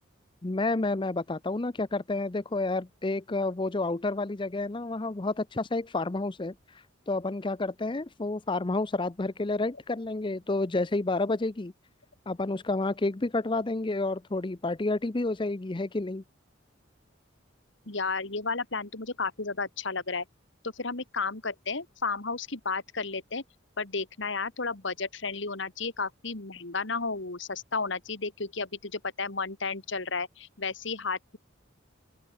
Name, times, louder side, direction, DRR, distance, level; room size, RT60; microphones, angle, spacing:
voice 1, 0.4-11.7 12.3-16.2, left 2 dB, 25° left, 0.6 m, -30 dB
voice 2, 17.9-20.2 20.6-23.4 23.8-31.4, left 4 dB, 65° left, 2.1 m, -33 dB
open air
head